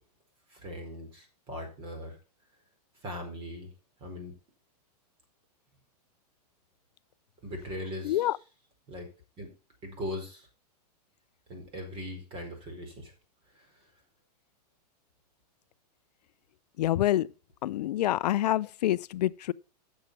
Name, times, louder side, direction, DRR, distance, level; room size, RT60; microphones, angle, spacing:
voice 1, 0.5-2.2 3.0-3.7 4.0-4.3 7.4-8.3 8.9-9.1 9.4-9.5 9.8-10.5 11.5-13.1 13.5-13.8, left 1 dB, 25° right, 4.8 m, -40 dB
voice 2, 8.0-8.4 16.8-17.3 17.6-19.5, left 13 dB, 80° left, 0.5 m, -27 dB
9.0 x 7.2 x 6.1 m
supercardioid pair, 145°, 21 cm